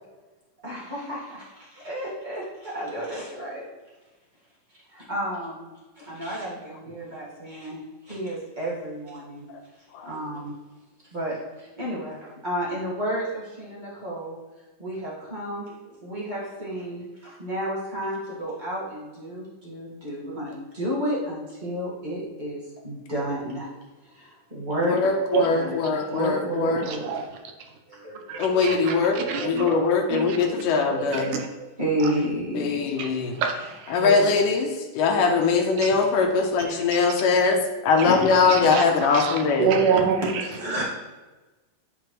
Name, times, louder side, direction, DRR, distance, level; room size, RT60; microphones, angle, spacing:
voice 1, 0.6-3.7 4.9-5.7 5.9-9.4 10.0-10.5 11.1-14.4 14.8-23.7 24.0-27.1 27.9-28.7 29.1-29.9 30.5-30.6 30.9-31.1 31.6-33.2 33.9-34.4 38.0-38.7 39.4-39.5 40.5-40.8, right 1 dB, 45° right, -7 dB, 0.6 m, -32 dB
voice 2, 24.8-26.9 28.4-31.3 32.6-33.4 33.9-37.6 37.8-39.7, left 4 dB, 80° left, 3 dB, 2.2 m, -22 dB
voice 3, 26.9-27.3 28.3-29.6 30.1-30.4 30.9-31.4 33.0-33.1 33.3-34.0 35.8-35.9 36.9-37.1 38.5-40.4, right 6 dB, 75° right, 3 dB, 2.2 m, -27 dB
10.0 x 5.0 x 3.1 m, 1.2 s
omnidirectional pair, 4.0 m